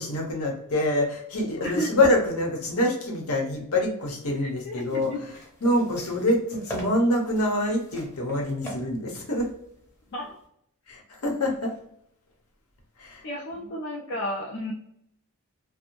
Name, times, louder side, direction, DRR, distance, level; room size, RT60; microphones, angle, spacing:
voice 1, 0.0-5.1 5.6-9.5 10.9-11.7 13.0-13.2, left 1 dB, 75° left, 1 dB, 0.8 m, -25 dB
voice 2, 4.4-5.2 8.6-8.7 10.1-10.4 13.2-14.7, equal, 55° left, -2 dB, 0.4 m, -32 dB
sound 1, 4.4-10.4, right 1 dB, 15° left, 0.7 m, -42 dB
2.5 x 2.0 x 2.9 m, 0.74 s
head